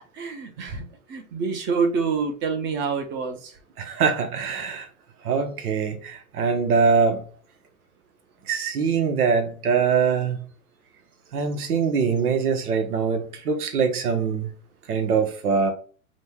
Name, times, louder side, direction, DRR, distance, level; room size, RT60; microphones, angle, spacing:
voice 1, 0.1-3.6, right 5 dB, 25° right, 0.7 m, -27 dB
voice 2, 3.8-4.9 5.2-7.2 8.5-10.4 11.3-14.5 14.9-15.7, right 5 dB, 90° right, 1.0 m, -23 dB
5.1 x 2.2 x 3.5 m
hypercardioid pair, 135°, 44 cm